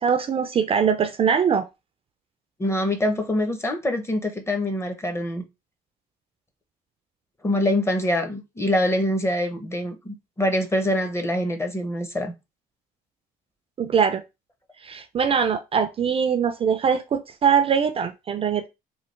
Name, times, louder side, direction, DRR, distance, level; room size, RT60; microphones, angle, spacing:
voice 1, 0.0-1.7 13.8-14.2 14.8-18.7, right 7 dB, 35° right, 0.4 m, -22 dB
voice 2, 2.6-5.4 7.4-12.3, left 1 dB, 15° left, 0.6 m, -24 dB
3.2 x 2.3 x 3.1 m
cardioid pair, 110°, 17 cm